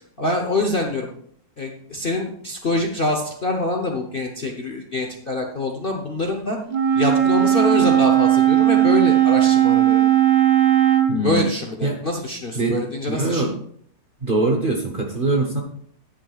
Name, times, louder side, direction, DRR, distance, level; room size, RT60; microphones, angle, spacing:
voice 1, 0.2-1.1 1.6-6.6 6.9-10.0 11.2-13.5, left 2 dB, 40° left, 1 dB, 0.9 m, -25 dB
Wind instrument woodwind instrument, 6.7-11.2, right 11 dB, 65° right, 0.4 m, -16 dB
voice 2, 11.1-11.5 11.8-12.0 12.5-12.8 13.1-13.6 14.2-15.6, right 2 dB, 35° right, 2 dB, 1.0 m, -22 dB
12.0 x 9.9 x 2.4 m, 0.63 s
omnidirectional pair, 2.0 m